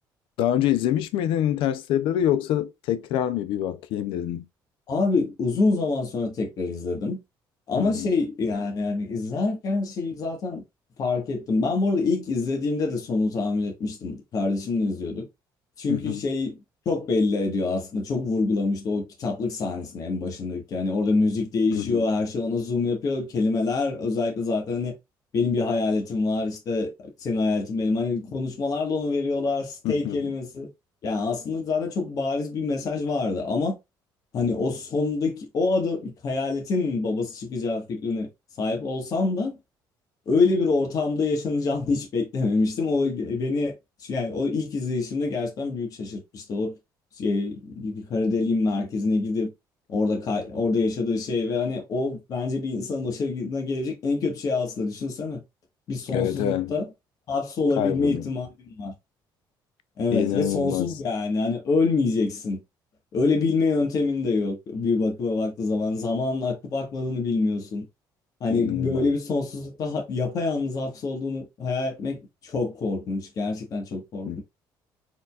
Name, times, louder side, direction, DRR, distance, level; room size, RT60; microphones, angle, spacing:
voice 1, 0.4-4.5 7.7-8.1 15.9-16.3 21.7-22.1 29.8-30.3 56.1-56.7 57.8-58.3 60.1-61.0 68.5-69.1 74.2-74.4, left 11 dB, 85° left, 0.6 m, -26 dB
voice 2, 4.9-7.2 7.7-10.6 11.0-15.3 15.8-16.6 16.8-24.9 25.3-26.9 27.2-30.7 31.0-33.8 34.3-38.3 38.6-39.6 40.3-46.7 47.2-49.5 49.9-55.4 55.9-56.9 57.3-58.5 58.8-58.9 60.0-62.6 63.1-67.8 68.4-74.4, left 3 dB, 45° left, 1.4 m, -26 dB
4.5 x 3.8 x 2.4 m
cardioid pair, 155°, 8 cm